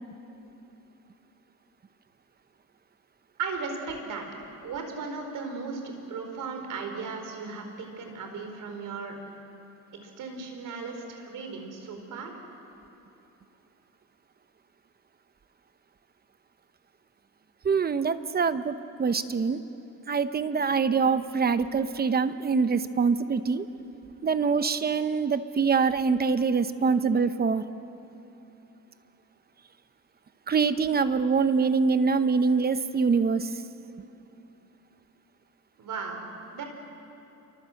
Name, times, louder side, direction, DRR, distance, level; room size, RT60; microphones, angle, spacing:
voice 1, 3.4-4.3 4.6-9.2 10.0-12.4 35.8-36.2 36.5-36.6, right 4 dB, 75° right, 4 dB, 4.5 m, -36 dB
voice 2, 17.6-19.6 20.1-23.7 24.2-27.6 30.5-33.6, right 5 dB, 30° right, 11 dB, 0.9 m, -24 dB
28.0 x 24.0 x 7.8 m, 2.9 s
cardioid pair, 145°, 32 cm